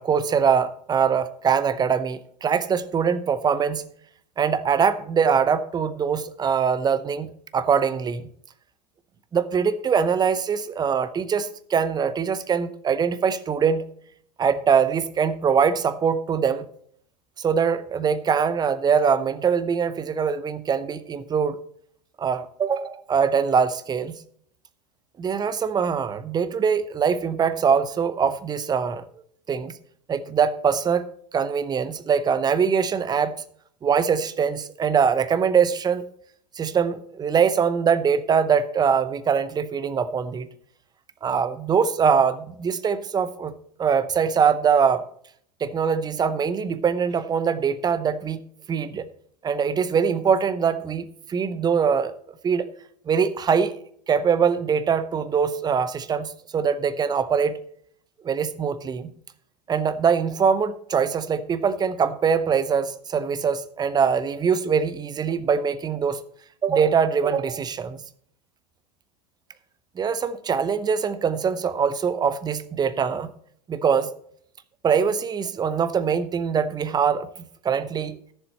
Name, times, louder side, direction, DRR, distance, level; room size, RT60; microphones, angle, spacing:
voice 1, 0.0-3.8 4.4-8.3 9.3-13.8 14.4-16.7 17.4-21.6 22.2-24.2 25.2-29.0 29.5-29.7 30.1-31.1 31.3-33.4 33.8-36.0 36.6-40.5 41.2-43.5 43.8-45.0 45.6-48.4 48.7-49.1 49.4-52.1 52.4-52.7 53.1-53.8 54.1-57.6 58.2-59.1 59.7-66.2 66.6-68.0 70.0-73.3 73.7-74.1 74.8-78.2, right 6 dB, 20° right, 14 dB, 0.8 m, -23 dB
14.0 x 6.8 x 4.3 m, 0.63 s
figure-of-eight pair, 85°, 21 cm